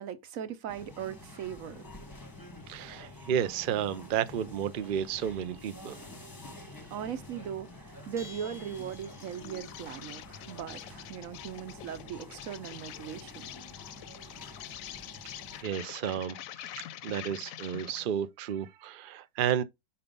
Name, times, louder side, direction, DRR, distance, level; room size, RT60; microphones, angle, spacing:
voice 1, 0.0-1.8 6.9-13.5, right 9 dB, 60° right, 1.1 m, -39 dB
sound 1, 0.7-15.6, left 2 dB, 15° left, 0.8 m, -48 dB
voice 2, 2.7-6.0 15.6-16.4 16.7-19.6, right 9 dB, 85° right, 0.4 m, -32 dB
Bell, 8.2-9.7, left 4 dB, 5° right, 0.4 m, -51 dB
Insect, 8.7-18.1, left 12 dB, 70° left, 0.9 m, -46 dB
5.5 x 4.3 x 5.2 m
omnidirectional pair, 1.7 m